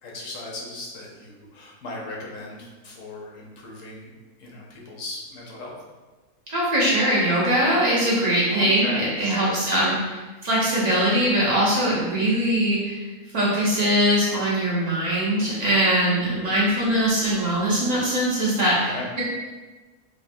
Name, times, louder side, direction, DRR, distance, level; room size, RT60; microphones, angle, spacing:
voice 1, 0.0-5.7 8.5-9.6 18.8-19.1, left 2 dB, 65° left, -2 dB, 0.9 m, -37 dB
voice 2, 6.5-13.0 13.3-19.2, right 1 dB, 65° right, -7 dB, 0.4 m, -22 dB
3.4 x 2.1 x 2.5 m, 1.3 s
omnidirectional pair, 1.6 m